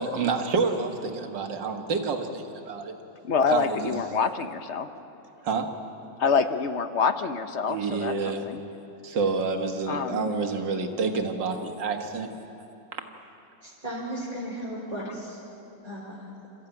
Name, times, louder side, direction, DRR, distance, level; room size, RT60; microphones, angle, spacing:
voice 1, 0.0-2.9 3.5-3.9 5.4-5.7 7.7-8.5 9.0-12.3 12.9-13.0, right 4 dB, 80° right, 5 dB, 2.2 m, -28 dB
voice 2, 3.2-4.9 6.2-8.6 9.9-10.3, left 6 dB, 50° left, 10 dB, 0.9 m, -26 dB
voice 3, 13.6-15.4 15.8-16.3, right 1 dB, 20° right, -7 dB, 3.6 m, -35 dB
29.0 x 14.0 x 9.0 m, 3.0 s
omnidirectional pair, 1.9 m